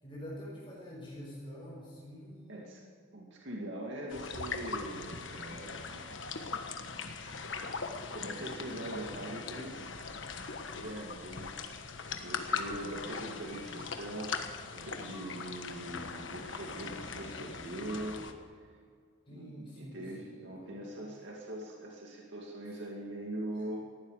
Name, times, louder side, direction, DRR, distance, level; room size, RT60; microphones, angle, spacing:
voice 1, 0.0-2.7 19.3-20.9 23.6-23.7, equal, 25° left, -5 dB, 5.3 m, -47 dB
voice 2, 2.5-2.8 3.1-6.1 6.8-7.3 8.1-10.2 10.7-11.6 12.2-18.2 19.3-23.8, right 1 dB, 65° right, -2 dB, 2.4 m, -42 dB
sound 1, 4.1-18.3, left 5 dB, 65° left, 1.4 m, -40 dB
19.0 x 15.0 x 5.0 m, 2.2 s
head